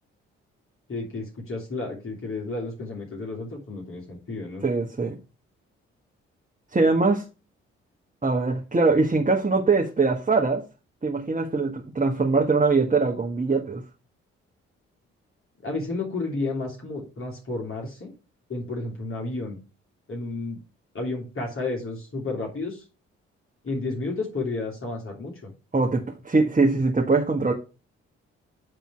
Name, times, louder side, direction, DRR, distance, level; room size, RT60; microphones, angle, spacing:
voice 1, 0.9-4.6 15.6-18.1 18.5-19.6 20.1-20.6 20.9-22.8 23.6-25.5, left 3 dB, 40° left, 3.2 m, -31 dB
voice 2, 4.6-5.2 6.7-7.2 8.2-10.6 11.0-13.8 25.7-27.5, right 3 dB, 25° right, 1.7 m, -22 dB
9.9 x 3.8 x 4.8 m
hypercardioid pair, 40°, 31 cm